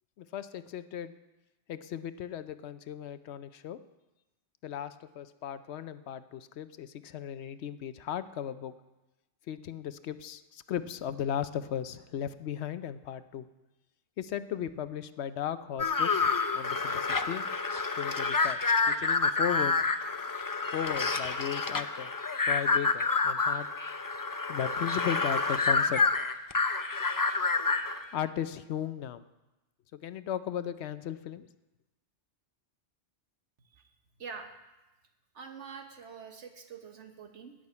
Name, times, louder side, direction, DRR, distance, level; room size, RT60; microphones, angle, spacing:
voice 1, 0.2-1.1 1.7-3.8 4.6-8.7 9.5-13.5 14.2-17.4 18.0-18.6 18.9-19.7 20.7-22.1 22.5-23.7 24.5-26.0 28.1-29.3 29.9-31.5, left 9 dB, 70° left, 13 dB, 0.9 m, -36 dB
sound 1, 15.8-28.0, left 4 dB, 30° left, 0.3 m, -28 dB
voice 2, 35.3-37.5, right 6 dB, 85° right, 5 dB, 1.6 m, -45 dB
14.0 x 6.3 x 9.5 m, 1.0 s
omnidirectional pair, 1.2 m